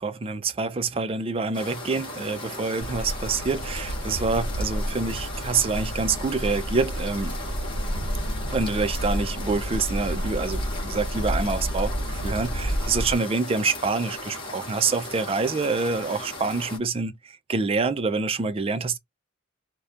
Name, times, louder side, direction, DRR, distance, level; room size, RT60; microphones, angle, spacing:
voice 1, 0.0-7.4 8.5-11.9 12.2-19.0, right 4 dB, 30° right, 0.3 m, -26 dB
sound 1, 1.5-16.8, left 2 dB, 25° left, 0.8 m, -37 dB
sound 2, 2.8-13.2, equal, 85° left, 1.0 m, -30 dB
2.7 x 2.1 x 2.3 m
head